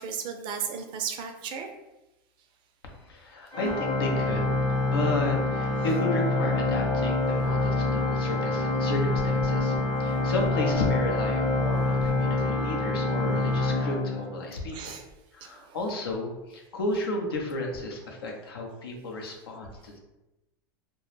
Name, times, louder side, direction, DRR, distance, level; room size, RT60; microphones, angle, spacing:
voice 1, 0.0-1.7 14.7-15.0 15.4-15.8, right 7 dB, 40° right, 5 dB, 0.4 m, -35 dB
voice 2, 2.8-15.0 15.3-20.0, left 2 dB, 85° left, 1 dB, 0.6 m, -33 dB
Organ, 3.5-14.7, left 2 dB, 30° left, 0.8 m, -26 dB
2.2 x 2.0 x 3.0 m, 0.99 s
hypercardioid pair, 100°, 12 cm